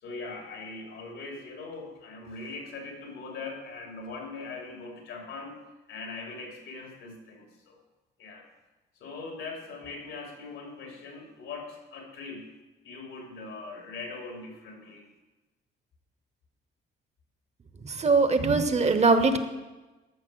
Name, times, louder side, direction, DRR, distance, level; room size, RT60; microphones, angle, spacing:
voice 1, 0.0-5.6 5.9-7.8 8.2-8.5 9.0-12.5 12.8-15.0, left 3 dB, 85° left, 0 dB, 3.1 m, -41 dB
voice 2, 17.8-19.4, right 3 dB, 35° right, 9 dB, 1.0 m, -22 dB
13.5 x 5.8 x 6.2 m, 1.1 s
cardioid pair, 90°, 20 cm